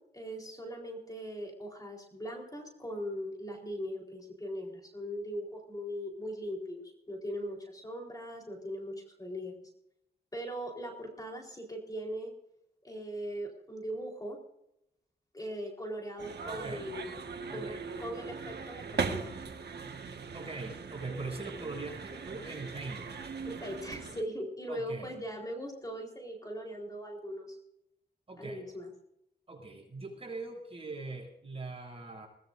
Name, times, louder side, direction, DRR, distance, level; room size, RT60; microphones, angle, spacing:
voice 1, 0.1-9.7 10.3-12.3 12.8-14.4 15.3-17.2 17.5-17.7 18.0-19.4 23.4-27.6 28.4-28.9, equal, 20° left, 0 dB, 4.2 m, -40 dB
sound 1, 16.2-24.2, right 5 dB, 70° right, 1.7 m, -39 dB
voice 2, 16.5-16.9 17.5-17.8 20.3-23.1 24.7-25.1 28.3-28.7 29.5-32.3, right 3 dB, 35° right, 1 dB, 7.5 m, -41 dB
23.0 x 19.5 x 2.7 m, 0.78 s
wide cardioid pair, 105°, 18 cm